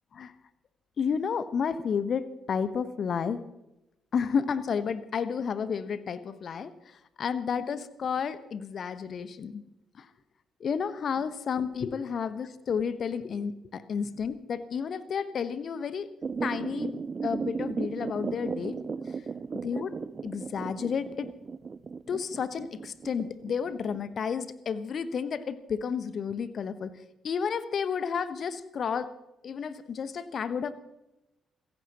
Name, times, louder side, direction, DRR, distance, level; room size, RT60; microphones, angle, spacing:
voice 1, 1.0-3.4 4.1-6.7 7.2-9.6 10.0-10.1 10.6-16.1 16.4-18.7 19.6-19.9 20.2-21.3 22.1-26.9 27.2-29.1 29.4-30.7, left 6 dB, 50° left, 14 dB, 1.2 m, -31 dB
sound 1, 16.2-24.0, right 5 dB, 40° right, 0.6 m, -36 dB
28.0 x 15.5 x 3.0 m, 0.91 s
figure-of-eight pair, 40°, 0 cm